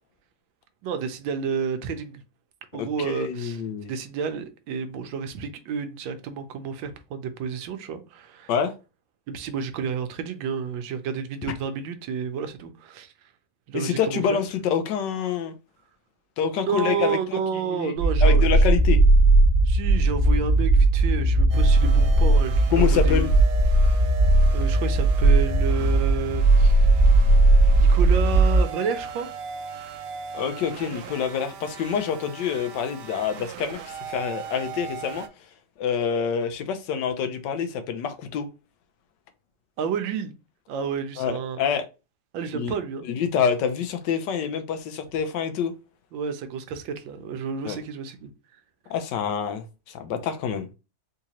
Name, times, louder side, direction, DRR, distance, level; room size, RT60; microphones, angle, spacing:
voice 1, 0.8-2.2 2.7-3.6 3.9-8.5 9.3-13.1 13.7-14.4 16.6-18.6 19.6-23.3 24.5-26.9 27.7-29.3 39.8-40.3 40.7-41.6 42.3-43.1 46.1-48.3, right 6 dB, 90° right, 1.4 m, -30 dB
voice 2, 2.7-3.9 8.5-8.7 13.7-15.5 16.4-17.4 17.7-17.9 18.2-19.0 22.7-23.3 30.3-35.2 35.8-38.5 41.2-41.9 42.5-42.7 43.0-45.7 47.6-47.8 48.9-50.7, left 7 dB, 75° left, 1.2 m, -26 dB
sound 1, 18.0-28.6, right 2 dB, 50° left, 1.0 m, -18 dB
sound 2, 21.5-35.3, right 6 dB, 75° right, 1.1 m, -39 dB
3.8 x 2.7 x 2.9 m
omnidirectional pair, 2.0 m